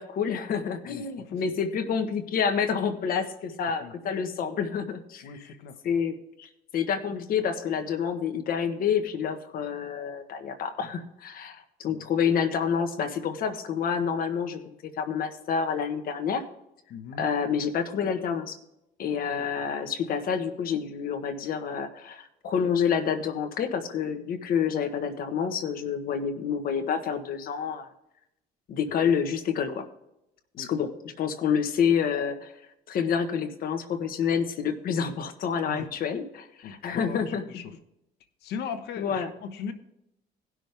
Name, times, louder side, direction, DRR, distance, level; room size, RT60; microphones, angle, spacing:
voice 1, 0.0-5.2 5.8-16.4 17.2-18.6 19.0-27.9 28.7-29.8 30.6-32.5 32.9-37.6 39.0-39.3, left 7 dB, 60° left, 8 dB, 1.4 m, -28 dB
voice 2, 0.8-1.4 3.8-3.9 5.2-5.8 10.8-10.9 11.8-12.0 16.9-17.3 19.2-19.5 30.6-30.7 35.7-35.9 36.6-37.7 38.4-39.7, left 6 dB, 80° left, 9 dB, 1.2 m, -39 dB
18.0 x 6.2 x 3.5 m, 0.85 s
cardioid pair, 110°, 17 cm